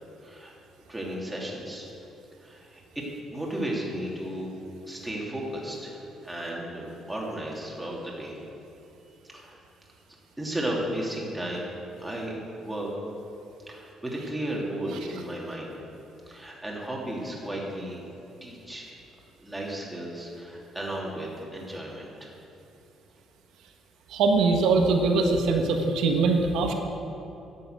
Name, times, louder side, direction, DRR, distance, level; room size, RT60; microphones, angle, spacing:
voice 1, 0.2-0.5 0.9-1.9 2.4-3.0 3.3-4.5 4.9-8.4 9.3-9.6 10.4-12.3 12.6-12.9 13.7-15.8 16.3-18.0 18.4-18.9 19.4-22.3, right 1 dB, 5° right, -3 dB, 2.6 m, -34 dB
voice 2, 24.1-26.7, right 3 dB, 85° right, 3 dB, 1.3 m, -22 dB
11.5 x 8.0 x 7.8 m, 2.9 s
cardioid pair, 130°, 0 cm